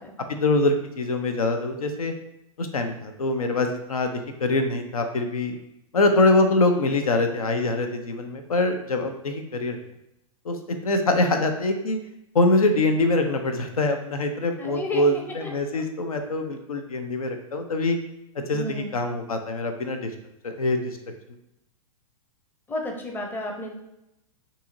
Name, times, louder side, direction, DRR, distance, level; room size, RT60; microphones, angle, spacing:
voice 1, 0.3-2.1 2.6-4.1 4.4-5.6 5.9-9.8 10.4-10.6 10.8-12.0 12.3-18.0 18.4-20.1 20.4-21.0, left 2 dB, 80° left, 6 dB, 0.6 m, -24 dB
voice 2, 14.6-15.8 18.5-19.0 22.7-23.7, left 2 dB, 10° left, 2 dB, 0.6 m, -32 dB
5.5 x 2.9 x 2.6 m, 0.86 s
hypercardioid pair, 110°, 18 cm